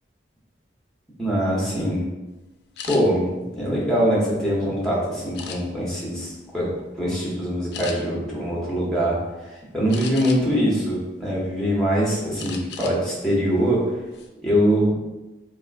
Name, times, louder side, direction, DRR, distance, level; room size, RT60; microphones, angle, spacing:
voice 1, 1.2-2.0 2.9-3.3 3.5-6.7 7.0-9.2 9.4-13.8 14.4-14.9, equal, 5° left, -5 dB, 0.8 m, -23 dB
sound 1, 2.8-3.0 3.6-4.6 5.3-5.9 6.5-6.7 7.0-7.2 7.7-8.0 9.9-10.6 11.1-11.8 12.4-13.0 13.3-13.5 13.9-14.3, left 6 dB, 60° left, 0.3 m, -37 dB
3.4 x 2.5 x 2.4 m, 1.1 s
head